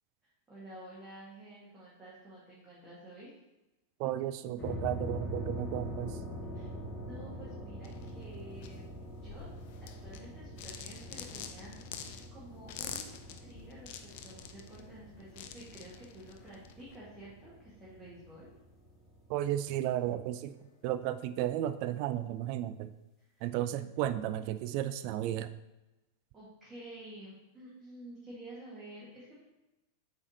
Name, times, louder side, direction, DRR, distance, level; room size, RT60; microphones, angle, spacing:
voice 1, 0.2-3.3 6.5-6.7 7.0-8.9 9.2-9.5 9.8-13.1 13.4-18.5 23.2-23.4 23.8-23.9 26.3-29.4, right 1 dB, 15° right, -8 dB, 1.8 m, -50 dB
voice 2, 4.0-6.2 19.3-20.6 20.8-22.9 23.4-25.5, right 12 dB, 45° right, 12 dB, 0.4 m, -33 dB
sound 1, 4.6-19.8, equal, 10° left, 2.1 m, -44 dB
sound 2, 7.8-17.0, left 8 dB, 50° left, 0.5 m, -47 dB
8.3 x 3.3 x 4.1 m, 1.0 s
figure-of-eight pair, 90°, 0 cm